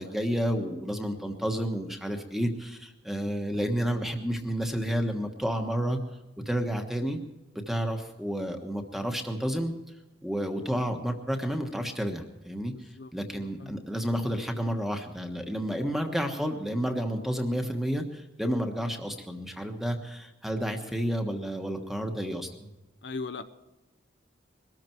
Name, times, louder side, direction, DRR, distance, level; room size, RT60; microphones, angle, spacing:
voice 1, 0.0-6.0 6.4-7.2 7.5-9.7 10.2-22.7, equal, ahead, 5 dB, 1.3 m, -30 dB
voice 2, 12.7-13.8 23.0-23.4, left 4 dB, 60° left, 11 dB, 0.7 m, -40 dB
22.5 x 13.5 x 4.6 m, 1.1 s
head